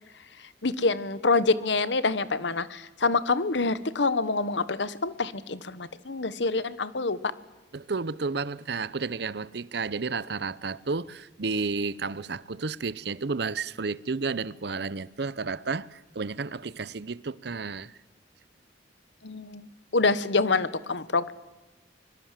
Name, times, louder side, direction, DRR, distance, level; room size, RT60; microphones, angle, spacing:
voice 1, 0.6-7.2 19.2-19.7 19.9-21.3, left 3 dB, 75° left, 1.1 m, -26 dB
voice 2, 7.7-17.9, right 4 dB, 65° right, 0.7 m, -32 dB
25.0 x 21.5 x 7.5 m
head